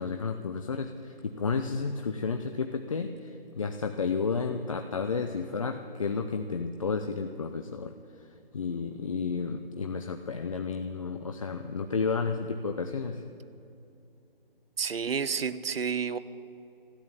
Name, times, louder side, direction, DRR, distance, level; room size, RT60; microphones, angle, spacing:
voice 1, 0.0-7.9 8.2-8.3 8.5-13.2, left 5 dB, 35° left, 6 dB, 0.5 m, -32 dB
voice 2, 14.8-16.2, right 6 dB, 80° right, 15 dB, 0.8 m, -30 dB
13.0 x 10.0 x 8.9 m, 2.7 s
figure-of-eight pair, 160°, 29 cm